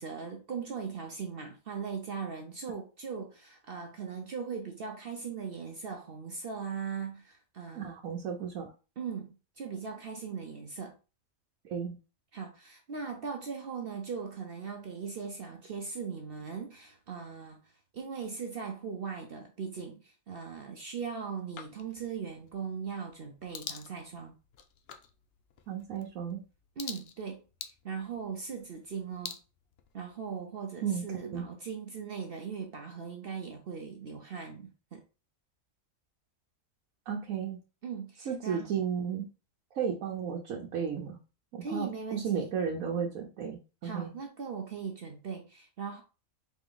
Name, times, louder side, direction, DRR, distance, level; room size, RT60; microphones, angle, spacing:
voice 1, 0.0-7.9 9.0-11.0 12.3-17.6 17.9-24.3 26.8-27.4 27.8-29.4 29.9-35.0 37.8-38.8 41.6-42.5 43.8-46.0, right 6 dB, 55° right, 0.8 m, -39 dB
voice 2, 7.7-8.7 11.6-12.0 25.7-26.4 30.8-31.5 37.1-37.6 38.2-39.2 39.7-41.2 41.5-44.1, right 7 dB, 90° right, 1.2 m, -34 dB
sound 1, 21.5-30.4, left 8 dB, 60° left, 0.7 m, -48 dB
4.1 x 3.0 x 3.8 m
omnidirectional pair, 1.4 m